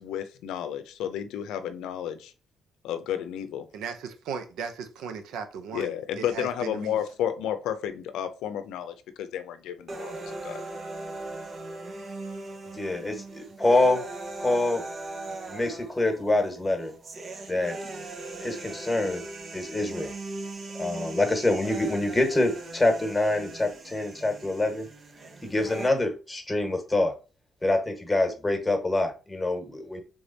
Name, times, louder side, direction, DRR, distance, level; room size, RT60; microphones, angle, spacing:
voice 1, 0.0-2.3 2.8-3.7 5.7-10.6, left 9 dB, 90° left, 0.5 m, -32 dB
voice 2, 3.7-7.0, right 6 dB, 85° right, 0.7 m, -37 dB
sound 1, 9.9-25.9, right 2 dB, 45° right, 0.8 m, -39 dB
voice 3, 12.7-14.0 14.4-14.8 15.3-16.9 17.5-17.8 18.4-19.2 19.5-20.1 20.8-24.9 25.4-27.1 27.6-30.0, left 2 dB, 15° left, 1.4 m, -26 dB
3.5 x 3.5 x 4.0 m
cardioid pair, 90°, 0 cm